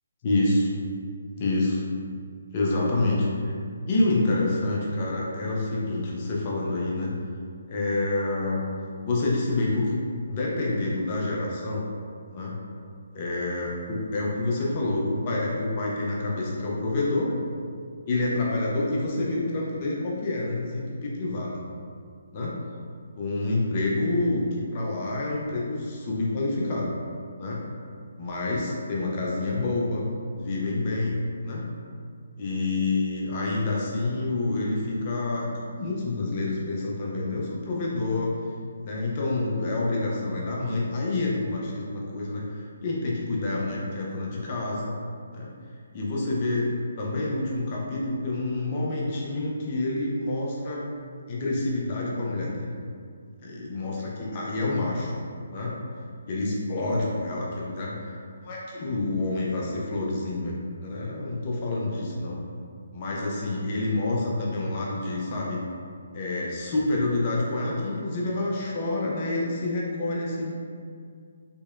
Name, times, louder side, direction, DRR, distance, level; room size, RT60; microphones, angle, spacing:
voice 1, 0.2-0.7 1.4-1.8 2.5-3.5 3.9-7.1 7.7-8.6 9.0-11.8 12.3-12.6 13.1-17.3 18.1-21.6 22.3-22.5 23.1-26.9 27.4-27.6 28.2-30.1 30.3-31.6 32.4-35.5 35.8-38.3 38.8-45.0 45.3-45.5 45.9-50.9 51.3-52.7 53.4-55.1 55.5-55.8 56.3-58.1 58.4-60.5 60.8-62.4 62.9-65.6 66.1-70.5, left 2 dB, 30° left, -4 dB, 0.4 m, -28 dB
2.9 x 2.7 x 2.3 m, 2.2 s
figure-of-eight pair, 140°, 0 cm